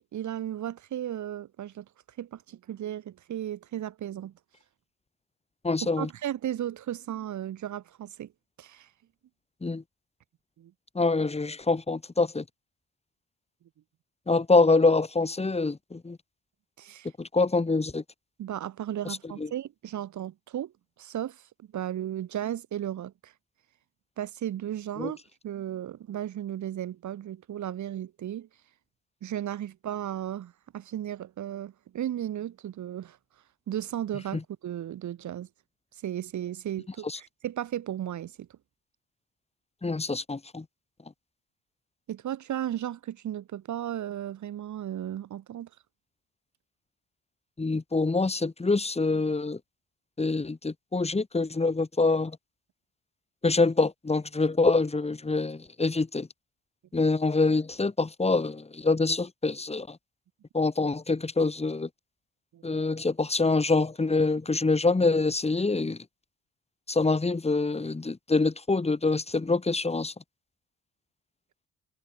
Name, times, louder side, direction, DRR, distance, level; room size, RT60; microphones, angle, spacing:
voice 1, 0.1-1.8 2.2-4.3 5.8-8.3 8.6-8.9 10.6-10.7 16.8-17.1 18.4-20.7 21.0-21.4 21.7-23.3 24.2-25.2 25.4-28.5 29.2-33.2 33.7-35.5 35.9-38.5 42.1-45.7 62.5-62.8, right 11 dB, 70° right, 7.0 m, -35 dB
voice 2, 5.6-6.1 9.6-9.8 10.9-12.4 14.3-16.2 17.2-18.0 19.4-19.5 25.0-25.1 37.0-37.2 39.8-40.6 47.6-49.6 50.2-52.4 53.4-56.3 56.9-60.0 60.5-61.9 62.6-66.0 66.9-70.1, left 3 dB, 20° left, 4.0 m, -25 dB
cardioid pair, 90°, 30 cm